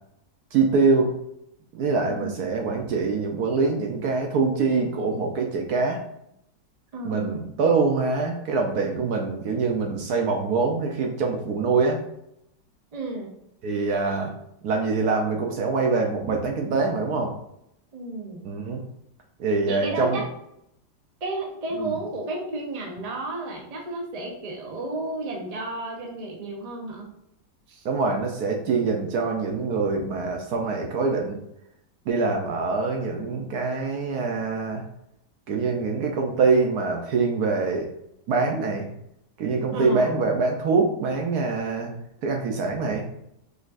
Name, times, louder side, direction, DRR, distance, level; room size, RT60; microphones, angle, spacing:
voice 1, 0.5-1.1 1.7-6.0 7.0-12.0 13.6-14.3 14.6-17.3 18.4-18.8 19.4-20.2 21.8-21.9 27.8-31.4 32.1-34.8 35.5-37.9 38.3-38.9 39.4-41.9 42.2-43.0, right 4 dB, 65° right, 1 dB, 1.2 m, -24 dB
voice 2, 2.1-2.4 6.9-7.5 12.9-13.3 17.9-18.5 19.6-20.3 21.2-27.1 27.7-27.8 39.7-40.2, right 2 dB, 30° right, 0 dB, 0.7 m, -32 dB
5.1 x 3.9 x 2.5 m, 0.77 s
omnidirectional pair, 1.9 m